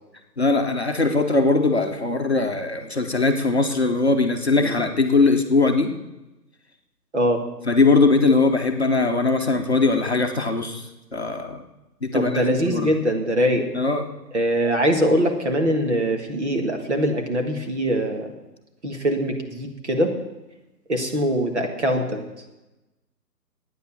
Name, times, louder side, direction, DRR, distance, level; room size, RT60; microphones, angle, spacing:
voice 1, 0.4-5.9 7.7-10.8 11.1-11.6 12.0-12.4 12.7-12.9 13.7-14.0, left 3 dB, 40° left, 3 dB, 0.9 m, -20 dB
voice 2, 12.1-13.7 14.3-18.3 18.8-20.1 20.9-22.2, equal, 40° right, 3 dB, 1.8 m, -22 dB
11.5 x 9.3 x 7.1 m, 1.0 s
hypercardioid pair, 180°, 50 cm